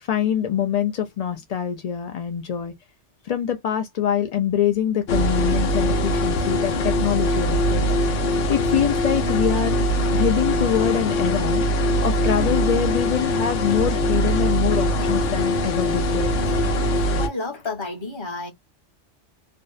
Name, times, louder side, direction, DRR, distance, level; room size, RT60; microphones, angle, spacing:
voice 1, 0.0-2.7 3.2-7.9 8.5-9.8 10.1-11.6 12.0-16.3, left 9 dB, 65° left, 0.3 m, -24 dB
sound 1, 5.1-17.3, equal, 80° left, 1.0 m, -22 dB
voice 2, 17.1-18.5, left 3 dB, 25° left, 0.8 m, -30 dB
2.6 x 2.0 x 2.3 m
omnidirectional pair, 1.2 m